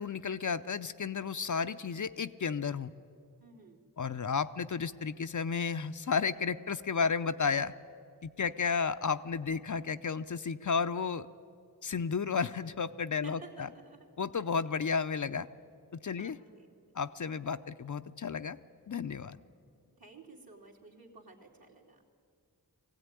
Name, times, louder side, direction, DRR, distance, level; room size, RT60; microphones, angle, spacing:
voice 1, 0.0-2.9 4.0-7.7 8.2-11.3 11.8-13.7 14.2-15.5 16.0-16.4 17.0-18.6 18.9-19.4, left 5 dB, 50° left, 12 dB, 0.6 m, -32 dB
voice 2, 3.4-3.8 13.2-14.1 14.4-14.5 16.1-16.7 20.0-22.0, right 3 dB, 65° right, -2 dB, 2.9 m, -53 dB
20.0 x 16.0 x 9.6 m, 2.3 s
cardioid pair, 40°, 39 cm